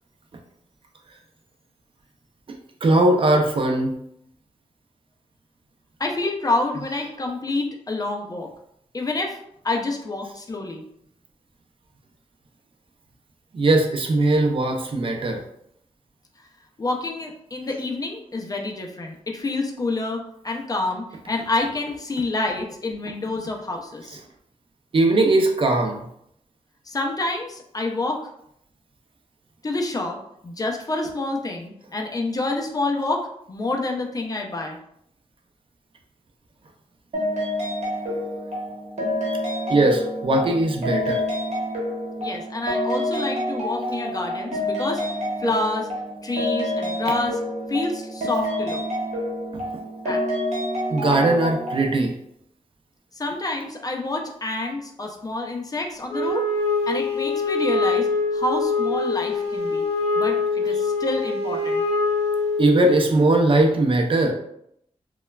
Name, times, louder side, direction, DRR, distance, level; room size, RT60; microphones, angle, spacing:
voice 1, 2.8-3.9 13.5-15.4 24.9-26.0 38.1-38.2 39.7-41.2 50.9-52.1 62.6-64.3, right 2 dB, 45° right, 2 dB, 0.4 m, -19 dB
voice 2, 6.0-8.5 8.9-9.4 9.6-10.8 16.8-24.2 26.9-28.2 29.6-30.2 30.4-34.8 42.2-45.0 45.4-45.9 46.2-47.4 47.7-48.8 50.0-50.2 53.2-56.5 56.9-59.9 60.2-61.8, left 2 dB, 30° left, 1 dB, 0.4 m, -28 dB
sound 1, 37.1-51.9, left 1 dB, 65° right, 0.9 m, -28 dB
Wind instrument woodwind instrument, 56.1-62.9, left 3 dB, 50° left, 0.9 m, -24 dB
3.0 x 2.2 x 2.2 m, 0.73 s
wide cardioid pair, 105°, 12 cm